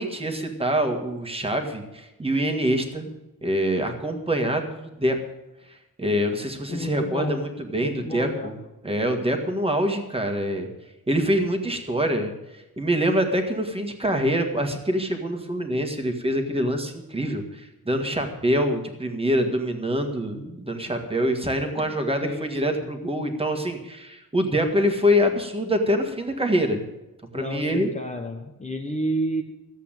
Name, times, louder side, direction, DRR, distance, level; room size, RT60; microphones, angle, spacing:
voice 1, 0.0-3.1 3.4-5.2 6.0-8.6 8.8-10.7 11.1-26.8 27.3-27.9, equal, 15° right, 4 dB, 1.8 m, -25 dB
voice 2, 6.7-7.4 7.8-8.5 22.2-22.9 27.3-29.4, equal, 20° left, 3 dB, 1.0 m, -31 dB
14.0 x 8.2 x 9.0 m, 1.0 s
wide cardioid pair, 180°, 35 cm